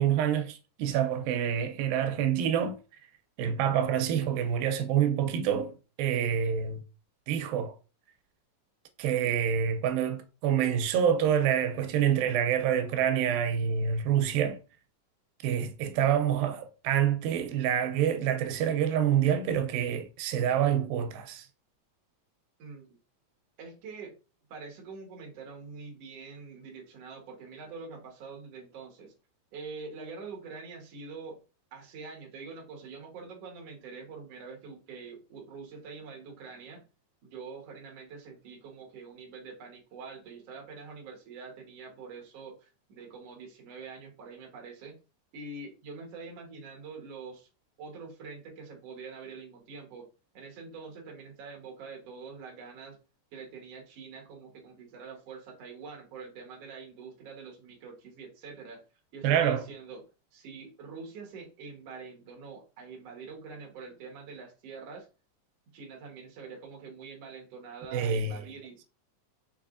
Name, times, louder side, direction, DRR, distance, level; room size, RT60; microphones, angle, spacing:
voice 1, 0.0-2.8 3.4-6.8 7.3-7.7 9.0-14.6 15.4-21.5 59.2-59.6 67.9-68.4, right 9 dB, 90° right, 2.3 m, -27 dB
voice 2, 23.6-24.2 24.5-29.1 29.5-31.4 31.7-36.8 37.2-45.0 45.3-47.5 47.8-50.1 50.3-53.0 53.3-58.8 59.1-60.1 60.3-65.1 65.7-68.8, right 4 dB, 55° right, 2.0 m, -45 dB
5.8 x 3.3 x 2.5 m
omnidirectional pair, 4.0 m